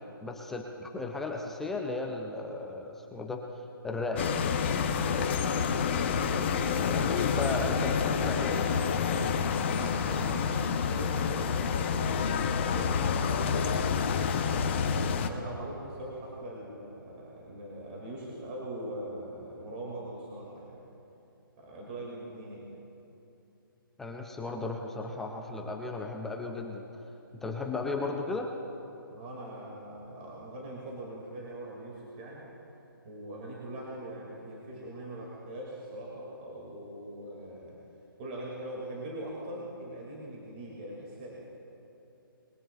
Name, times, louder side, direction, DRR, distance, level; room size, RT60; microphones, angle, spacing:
voice 1, 0.2-3.4 3.8-4.2 6.8-8.7 24.0-27.0 27.3-28.5, left 3 dB, 5° left, 1 dB, 0.3 m, -35 dB
sound 1, 4.2-15.3, left 6 dB, 30° left, 0.7 m, -28 dB
voice 2, 5.1-5.5 6.8-7.0 9.7-14.6 15.1-20.8 21.6-22.7 29.1-32.5 33.0-37.8 38.2-41.5, right 1 dB, 25° right, -4 dB, 2.2 m, -42 dB
21.0 x 16.5 x 2.3 m, 2.8 s
hypercardioid pair, 160°, 12 cm